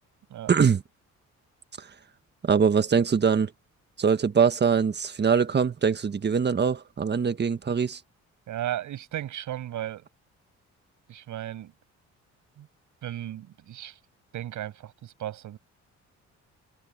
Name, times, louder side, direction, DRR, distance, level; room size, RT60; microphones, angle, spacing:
voice 1, 0.5-0.8 1.8-1.9 2.4-3.5 4.0-8.0, right 6 dB, 35° right, 1.5 m, -23 dB
voice 2, 8.5-10.1 11.1-11.7 12.6-12.7 13.0-14.0 14.3-15.6, right 12 dB, 75° right, 7.5 m, -35 dB
cardioid pair, 90°, 30 cm